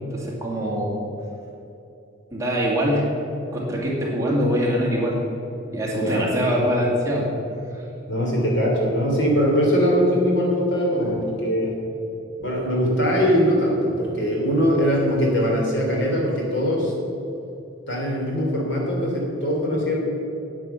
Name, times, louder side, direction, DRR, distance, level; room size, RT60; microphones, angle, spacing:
voice 1, 0.1-1.0 2.3-3.1 3.5-5.2 5.7-7.3, equal, 15° right, -4 dB, 2.2 m, -23 dB
voice 2, 5.9-6.5 8.1-11.8 12.4-16.9 17.9-20.0, equal, 60° left, -2 dB, 3.3 m, -21 dB
10.0 x 9.0 x 6.9 m, 2.9 s
head